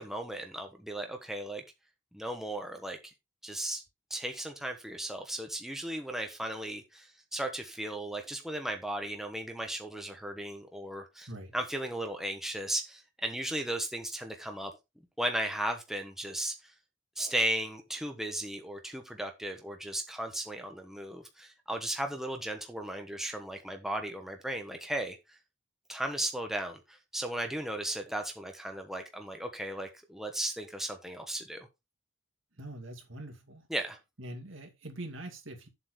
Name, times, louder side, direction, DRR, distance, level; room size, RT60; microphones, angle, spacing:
voice 1, 0.0-1.6 2.1-3.0 3.4-3.8 4.1-11.3 11.5-14.7 15.2-16.7 17.2-25.4 25.9-31.7 33.7-34.0, right 1 dB, ahead, 1.1 m, -36 dB
voice 2, 32.6-33.6 34.2-35.7, right 1 dB, 65° right, 2.5 m, -43 dB
7.8 x 4.0 x 6.7 m
head